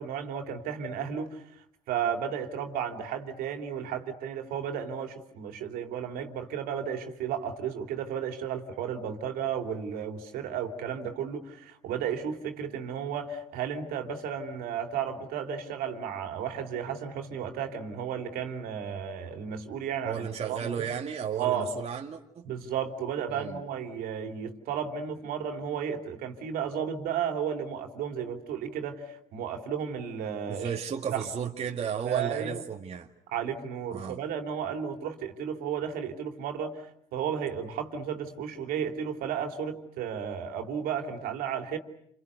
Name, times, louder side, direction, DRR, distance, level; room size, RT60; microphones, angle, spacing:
voice 1, 0.0-1.4 1.9-20.9 21.3-21.7 22.4-30.7 31.1-31.2 32.0-32.6 33.3-36.8 37.1-41.8, right 8 dB, 65° right, 5 dB, 3.2 m, -33 dB
voice 2, 20.1-22.4 23.3-23.6 30.5-33.1 33.9-34.2, right 7 dB, 40° right, 2 dB, 2.1 m, -34 dB
29.0 x 28.5 x 6.8 m, 0.73 s
hypercardioid pair, 60°, 16 cm